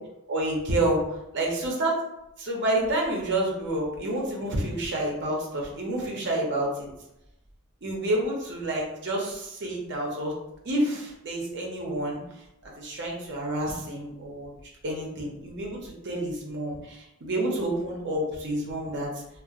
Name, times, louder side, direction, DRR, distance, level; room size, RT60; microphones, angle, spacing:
voice 1, 0.3-1.0 1.3-2.0 2.4-6.9 7.8-10.3 10.6-12.2 12.6-14.5 14.8-19.1, right 1 dB, 55° right, -2 dB, 0.6 m, -29 dB
2.8 x 2.0 x 2.4 m, 0.88 s
head